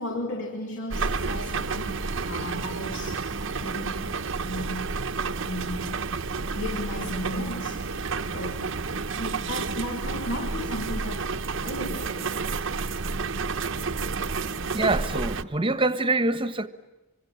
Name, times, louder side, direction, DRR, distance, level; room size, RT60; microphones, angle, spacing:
voice 1, 0.0-3.3 3.6-5.0 5.4-6.0 6.5-8.8 9.1-11.3 11.6-12.7, left 1 dB, 60° left, 2.8 m, -35 dB
sound 1, 0.9-15.4, right 4 dB, 60° right, 1.0 m, -30 dB
voice 2, 14.7-16.7, right 2 dB, 25° right, 1.3 m, -25 dB
25.5 x 25.5 x 9.2 m
head